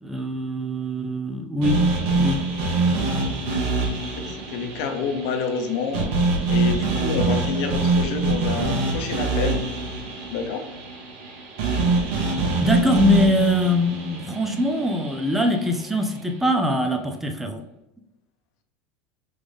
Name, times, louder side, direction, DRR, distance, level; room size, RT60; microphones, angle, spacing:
voice 1, 0.0-1.8 2.1-2.4 12.6-17.6, left 1 dB, 5° right, 4 dB, 0.5 m, -23 dB
sound 1, 1.6-15.8, right 3 dB, 65° right, 1.2 m, -25 dB
voice 2, 3.9-6.1 6.5-9.6 10.3-10.6, left 5 dB, 60° left, 6 dB, 0.8 m, -28 dB
3.9 x 3.4 x 3.5 m, 0.98 s
supercardioid pair, 150°, 5 cm